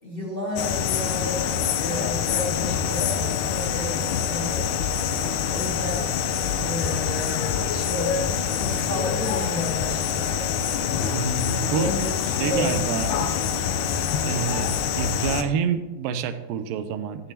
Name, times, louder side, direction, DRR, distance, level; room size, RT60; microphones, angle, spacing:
voice 1, 0.0-4.7 5.0-6.1 6.6-8.2 8.5-10.8 11.3-12.1 12.4-12.9, left 2 dB, 20° left, -5 dB, 1.9 m, -32 dB
sound 1, 0.6-15.4, left 7 dB, 80° left, 2.1 m, -25 dB
voice 2, 11.1-11.9 12.4-13.1 14.2-14.7 15.0-17.3, right 7 dB, 90° right, 10 dB, 2.3 m, -27 dB
12.5 x 8.9 x 2.8 m, 1.2 s
omnidirectional pair, 3.9 m